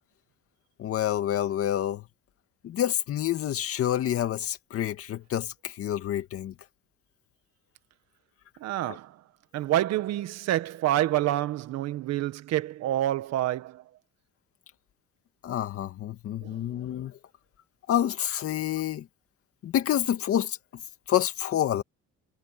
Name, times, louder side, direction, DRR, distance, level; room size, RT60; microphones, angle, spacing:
voice 1, 0.8-2.1 2.6-6.5 15.4-17.2 17.9-19.1 19.6-20.6 21.1-21.8, left 11 dB, 50° left, 2.1 m, -28 dB
voice 2, 8.6-9.2 9.5-13.8 16.4-16.6, right 13 dB, 60° right, 1.7 m, -28 dB
cardioid pair, 130°, 29 cm